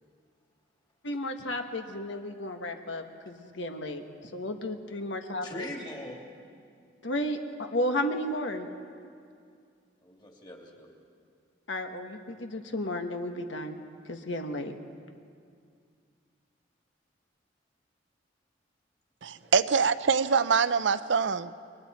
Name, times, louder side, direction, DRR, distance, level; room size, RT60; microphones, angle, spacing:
voice 1, 1.0-4.0 4.3-5.7 7.0-7.4 7.7-8.7 11.7-13.8 14.1-14.7, left 1 dB, 80° left, 5 dB, 1.5 m, -33 dB
voice 2, 5.4-6.2 10.0-10.9 19.3-19.7, left 1 dB, 25° left, 0 dB, 2.8 m, -42 dB
voice 3, 19.2-21.5, right 5 dB, 75° right, 13 dB, 0.6 m, -24 dB
29.0 x 22.5 x 4.4 m, 2.3 s
head